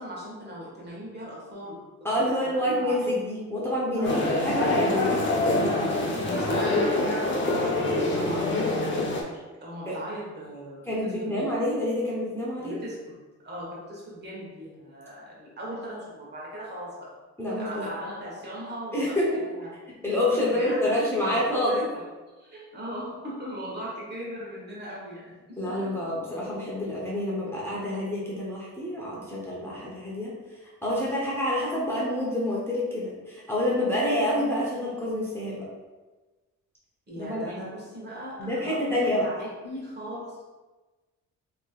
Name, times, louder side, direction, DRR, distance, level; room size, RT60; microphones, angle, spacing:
voice 1, 0.0-1.8 2.2-3.1 4.0-4.2 6.1-11.5 12.6-13.2 13.4-17.2 17.6-19.7 20.3-26.0 37.1-40.4, equal, 35° right, -5 dB, 1.3 m, -39 dB
voice 2, 2.0-5.3 5.6-5.9 9.9-10.0 10.9-12.8 17.4-17.8 18.9-19.4 20.0-21.8 25.6-30.3 30.8-35.7 37.2-37.4 38.4-39.3, left 1 dB, 10° left, -6 dB, 0.8 m, -27 dB
sound 1, 4.0-9.2, left 2 dB, 40° left, 0.7 m, -25 dB
3.2 x 3.0 x 2.3 m, 1.2 s
cardioid pair, 90°, 30 cm